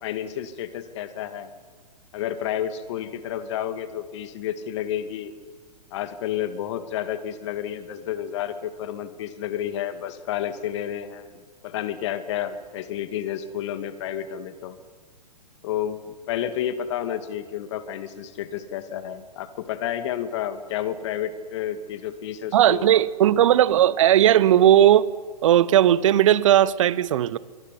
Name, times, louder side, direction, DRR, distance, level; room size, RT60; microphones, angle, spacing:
voice 1, 0.0-1.5 2.1-5.3 5.9-14.8 15.6-22.9, left 10 dB, 45° left, 2.4 m, -30 dB
voice 2, 22.5-25.0 25.4-27.4, right 11 dB, 50° right, 1.2 m, -17 dB
24.0 x 23.5 x 9.9 m
figure-of-eight pair, 120°, 21 cm